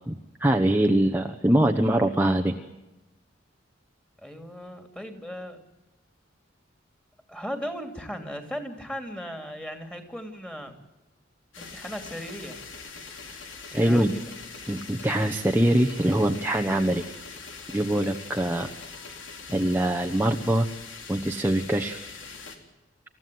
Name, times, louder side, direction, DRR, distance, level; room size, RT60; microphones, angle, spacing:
voice 1, 0.1-2.5 13.7-14.1 14.7-17.0 17.7-18.7 19.5-20.7 21.1-22.1, right 1 dB, 10° right, 3 dB, 1.0 m, -23 dB
voice 2, 4.2-5.6 7.3-10.7 11.6-12.6 13.7-14.2, equal, 5° left, 6 dB, 3.0 m, -37 dB
sound 1, 11.5-22.6, left 4 dB, 75° left, 3.6 m, -42 dB
28.0 x 15.5 x 9.4 m, 1.0 s
head